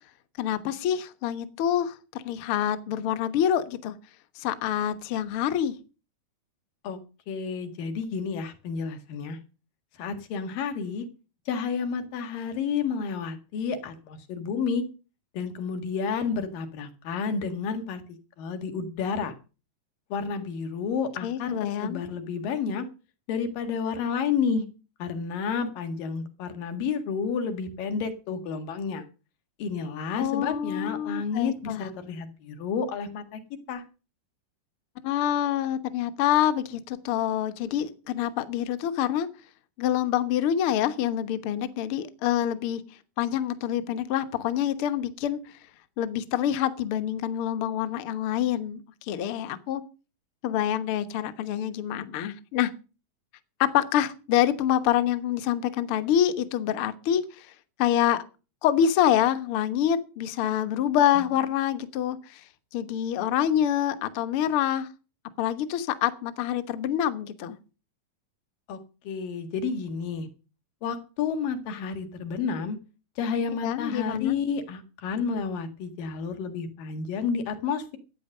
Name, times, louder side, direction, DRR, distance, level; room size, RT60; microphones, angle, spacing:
voice 1, 0.4-3.9 4.4-5.7 21.2-22.0 30.2-31.8 35.0-39.3 39.8-42.8 43.2-45.4 46.0-49.8 50.4-52.7 53.6-57.5 57.8-58.2 58.6-62.4 62.7-64.9 65.4-67.6 73.6-74.4, left 10 dB, 60° left, 11 dB, 1.5 m, -26 dB
voice 2, 7.3-9.4 10.0-11.1 11.5-14.8 15.3-18.0 18.4-19.4 20.1-22.9 23.3-24.7 25.0-29.0 29.6-33.4 33.7-33.8 61.2-61.3 68.7-68.8 69.1-70.3 70.8-72.8 73.2-78.0, left 5 dB, 85° left, 7 dB, 3.6 m, -30 dB
14.0 x 9.2 x 6.6 m, 0.34 s
omnidirectional pair, 3.8 m